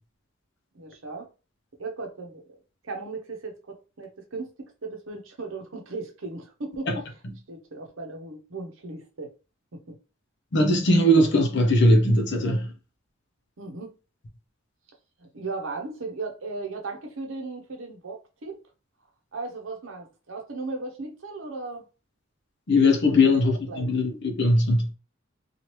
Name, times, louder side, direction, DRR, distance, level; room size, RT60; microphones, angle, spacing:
voice 1, 0.7-1.3 1.8-2.6 2.8-6.9 7.5-9.3 9.7-10.0 13.6-13.9 15.2-18.7 19.3-21.9 23.1-23.4 23.7-24.0, right 3 dB, 75° right, 0.8 m, -37 dB
voice 2, 10.5-12.7 22.7-24.9, left 1 dB, 60° left, 0.7 m, -20 dB
2.9 x 2.4 x 3.1 m
head